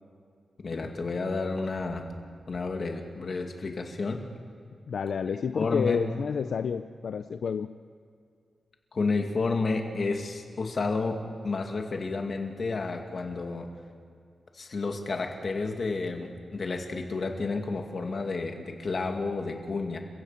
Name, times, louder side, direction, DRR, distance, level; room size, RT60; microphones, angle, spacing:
voice 1, 0.6-2.1 2.5-4.2 5.5-6.0 8.9-13.7 14.5-20.0, left 3 dB, 50° left, 3 dB, 2.4 m, -31 dB
voice 2, 4.9-7.7, left 6 dB, 75° left, 10 dB, 0.6 m, -29 dB
29.5 x 15.5 x 5.9 m, 2.3 s
wide cardioid pair, 120°, 0 cm